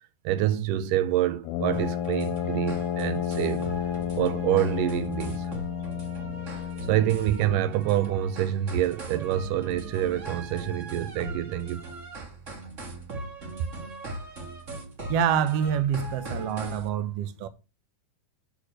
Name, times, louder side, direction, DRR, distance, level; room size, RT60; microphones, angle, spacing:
voice 1, 0.3-3.7 4.2-5.5 6.5-6.6 6.9-11.8, right 12 dB, 80° right, 2.2 m, -27 dB
Brass instrument, 1.4-7.3, left 8 dB, 80° left, 2.0 m, -31 dB
sound 1, 1.7-16.9, right 1 dB, 30° right, 1.4 m, -39 dB
voice 2, 15.1-17.5, right 8 dB, 65° right, 1.6 m, -26 dB
6.6 x 6.5 x 6.5 m
omnidirectional pair, 3.8 m